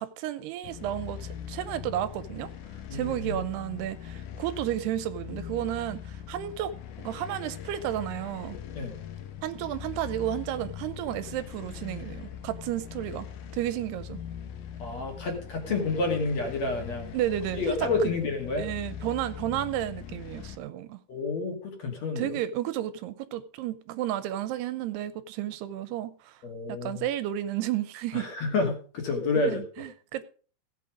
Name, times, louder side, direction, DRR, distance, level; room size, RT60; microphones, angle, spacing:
voice 1, 0.0-2.5 2.9-8.6 9.4-13.3 13.5-14.2 15.7-15.8 17.1-18.1 18.6-21.0 22.2-26.4 26.7-28.3 29.5-30.2, right 12 dB, 85° right, 2.8 m, -32 dB
sound 1, 0.6-20.6, left 9 dB, 65° left, 2.5 m, -41 dB
voice 2, 2.9-3.4 8.8-8.9 14.8-17.1 17.6-18.7 21.1-22.4 26.4-27.0 28.1-29.6, left 3 dB, 45° left, 2.9 m, -29 dB
16.5 x 8.4 x 5.0 m
omnidirectional pair, 4.8 m